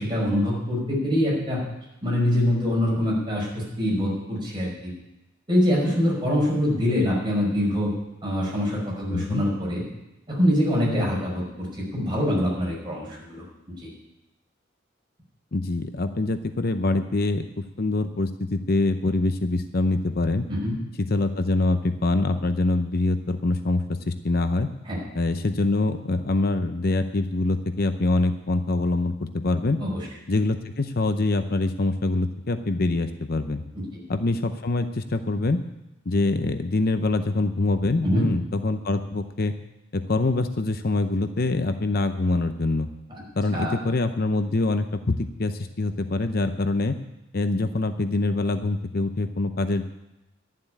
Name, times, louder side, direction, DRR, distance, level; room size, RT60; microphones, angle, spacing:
voice 1, 0.0-1.6 2.0-4.9 5.5-7.9 8.2-9.8 10.3-13.9 20.5-20.7 24.9-25.0 29.8-30.0 33.7-33.8 38.0-38.3 43.1-43.2 43.5-43.7, equal, 25° right, -4 dB, 5.5 m, -24 dB
voice 2, 9.1-9.4 15.5-20.4 21.0-24.7 25.1-29.8 30.3-33.6 34.1-35.6 36.1-39.5 39.9-42.9 43.4-47.0 47.3-49.9, left 2 dB, 50° left, 9 dB, 0.7 m, -24 dB
11.5 x 7.5 x 10.0 m, 0.93 s
head